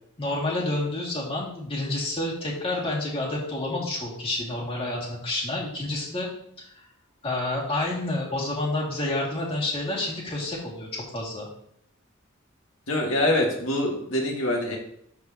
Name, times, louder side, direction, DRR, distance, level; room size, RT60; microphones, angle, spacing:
voice 1, 0.2-6.3 6.6-6.8 7.2-11.5, left 2 dB, 25° left, -5 dB, 2.6 m, -29 dB
voice 2, 12.9-14.8, left 1 dB, 85° left, 0 dB, 2.1 m, -24 dB
13.0 x 4.7 x 3.0 m, 0.69 s
head